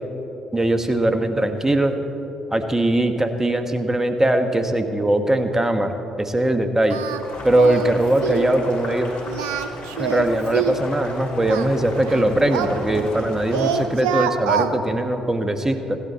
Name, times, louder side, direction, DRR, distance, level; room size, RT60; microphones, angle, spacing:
voice 1, 0.5-1.9 2.5-7.0 7.4-9.1 10.0-16.0, right 1 dB, 15° right, 7 dB, 1.3 m, -20 dB
Singing, 6.9-7.2 7.5-7.9 8.2-8.5 9.3-10.8 11.5-13.3 13.5-14.7, right 8 dB, 85° right, 0.5 m, -25 dB
Boiling, 7.1-13.9, left 1 dB, 65° left, 3.4 m, -36 dB
16.0 x 11.5 x 4.2 m, 3.0 s
hypercardioid pair, 50°, 3 cm